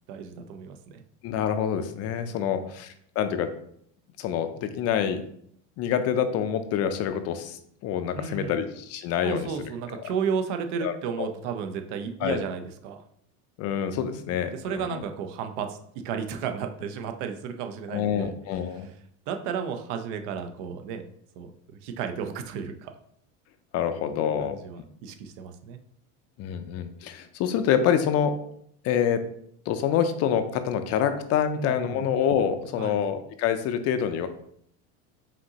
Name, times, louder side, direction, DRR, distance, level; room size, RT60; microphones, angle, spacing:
voice 1, 0.1-1.0 2.3-2.6 8.1-8.6 9.2-13.0 14.2-15.8 16.0-18.3 18.7-18.9 19.3-21.0 21.4-22.9 24.2-25.8 31.5-32.0 32.8-33.0, right 6 dB, 70° right, 7 dB, 0.7 m, -33 dB
voice 2, 1.2-3.5 4.2-5.2 5.8-9.5 10.8-11.3 12.2-12.4 13.6-15.0 17.9-18.9 23.7-24.6 26.4-28.4 28.8-29.2 29.7-34.3, left 8 dB, 45° left, 9 dB, 0.4 m, -26 dB
5.1 x 2.8 x 2.8 m, 0.67 s
supercardioid pair, 125°, 37 cm